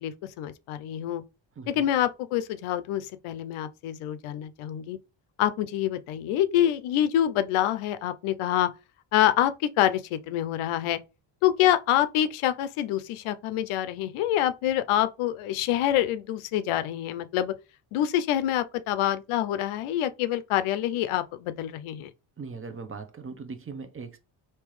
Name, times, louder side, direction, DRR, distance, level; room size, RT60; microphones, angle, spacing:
voice 1, 0.0-1.2 1.7-5.0 5.4-8.7 9.1-11.0 11.4-17.5 17.9-22.1, left 12 dB, 85° left, 0.6 m, -26 dB
voice 2, 1.6-1.9 22.4-24.2, right 4 dB, 25° right, 0.7 m, -39 dB
3.4 x 2.8 x 3.1 m
cardioid pair, 85°, 49 cm